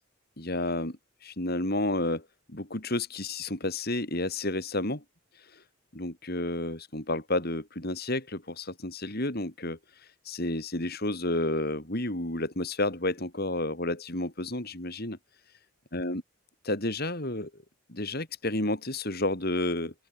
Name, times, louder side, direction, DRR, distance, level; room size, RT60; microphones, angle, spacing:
voice 1, 0.4-1.0 1.2-2.2 2.5-5.0 5.9-9.8 10.3-15.2 15.9-16.2 16.6-17.5 17.9-19.9, left 1 dB, 45° left, 3.8 m, -31 dB
open air
head